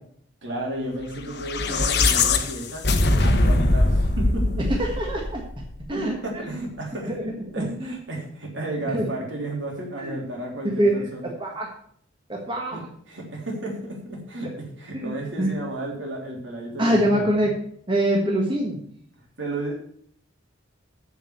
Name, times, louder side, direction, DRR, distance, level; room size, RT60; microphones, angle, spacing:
voice 1, 0.4-4.6 5.9-7.1 7.5-11.3 12.7-12.8 13.1-14.5 14.8-17.1 19.1-19.8, right 1 dB, 65° right, -1 dB, 3.2 m, -33 dB
sound 1, 1.3-5.7, left 2 dB, 55° left, 1.0 m, -21 dB
voice 2, 4.7-5.4 5.9-6.4 7.0-8.0 8.9-9.0 10.0-10.2 10.8-11.1 11.4-11.7 12.3-12.8 14.9-15.5 16.8-17.5 17.9-18.8, right 1 dB, 25° right, 0 dB, 1.4 m, -24 dB
7.3 x 7.2 x 7.9 m, 0.64 s
head